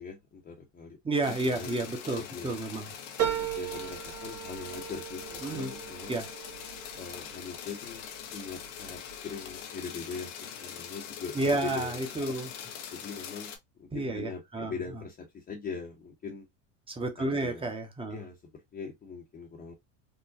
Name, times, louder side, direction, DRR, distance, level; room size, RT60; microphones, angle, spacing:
voice 1, 0.0-1.0 1.2-1.8 2.2-2.6 3.4-6.2 6.9-8.0 8.3-10.3 10.6-12.0 12.9-13.5 13.8-16.5 17.2-17.7 18.1-19.7, left 5 dB, 25° left, 0.9 m, -41 dB
voice 2, 1.0-2.9 5.4-5.7 6.1-6.3 11.3-12.5 13.9-15.0 16.9-18.2, right 2 dB, 15° right, 1.0 m, -31 dB
sound 1, 1.2-13.6, left 8 dB, 75° left, 0.9 m, -43 dB
sound 2, 3.2-7.9 8.4-9.1 9.5-9.6, right 10 dB, 40° right, 1.3 m, -36 dB
3.8 x 2.1 x 2.6 m
hypercardioid pair, 95°, 37 cm